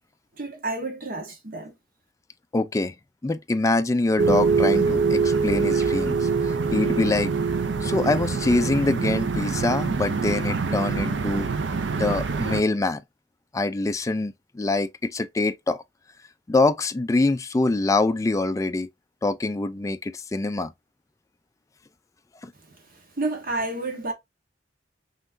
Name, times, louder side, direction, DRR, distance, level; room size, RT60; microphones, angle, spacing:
voice 1, 0.4-1.7 23.2-24.1, right 2 dB, 55° right, 1.2 m, -30 dB
voice 2, 2.5-2.9 3.2-7.3 7.8-11.5 12.0-13.0 13.5-15.8 16.5-18.9 19.2-20.7 22.4-22.5, left 2 dB, 20° left, 0.3 m, -24 dB
sound 1, 4.2-12.6, right 5 dB, 80° right, 0.5 m, -24 dB
5.7 x 3.0 x 2.6 m
head